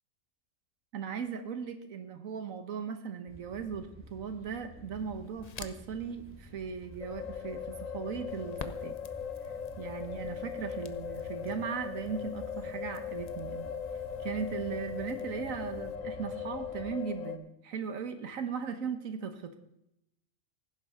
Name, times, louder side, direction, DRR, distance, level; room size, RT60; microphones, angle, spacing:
voice 1, 0.9-8.9 9.4-13.7 14.2-19.6, right 6 dB, 85° right, 8 dB, 1.5 m, -38 dB
sound 1, 3.3-16.9, right 1 dB, 10° right, 2.1 m, -50 dB
Crackle, 4.9-16.0, left 5 dB, 40° left, 0.6 m, -52 dB
sound 2, 7.0-17.4, left 7 dB, 85° left, 1.3 m, -39 dB
15.5 x 11.5 x 3.7 m, 0.82 s
omnidirectional pair, 1.4 m